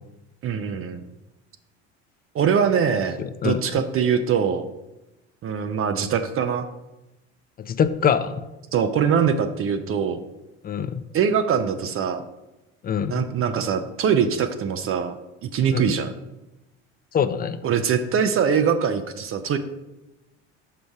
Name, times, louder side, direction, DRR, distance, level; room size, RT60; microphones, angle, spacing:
voice 1, 0.4-1.0 2.3-4.7 5.4-6.7 8.7-10.2 11.1-12.2 13.1-16.1 17.6-19.6, right 7 dB, 40° right, 9 dB, 0.6 m, -23 dB
voice 2, 3.2-3.6 7.6-8.4 10.6-11.0 12.8-13.3 15.7-15.9 17.1-17.6, left 7 dB, 25° left, 12 dB, 0.5 m, -24 dB
5.7 x 5.1 x 4.7 m, 0.99 s
hypercardioid pair, 80°, 34 cm